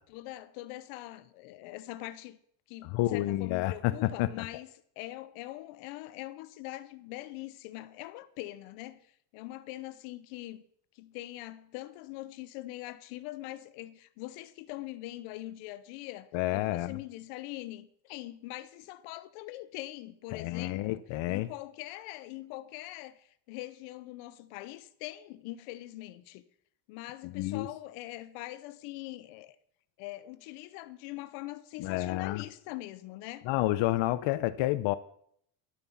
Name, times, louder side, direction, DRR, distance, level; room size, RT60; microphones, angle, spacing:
voice 1, 0.1-2.4 2.7-4.7 5.0-10.6 10.9-21.0 21.3-26.4 26.9-29.6 30.0-33.5, left 16 dB, 85° left, 1.0 m, -43 dB
voice 2, 2.8-4.4 16.3-17.0 20.3-21.5 27.2-27.7 31.8-32.4 33.5-34.9, left 16 dB, 65° left, 0.7 m, -29 dB
11.5 x 6.9 x 7.1 m
supercardioid pair, 85°, 50 cm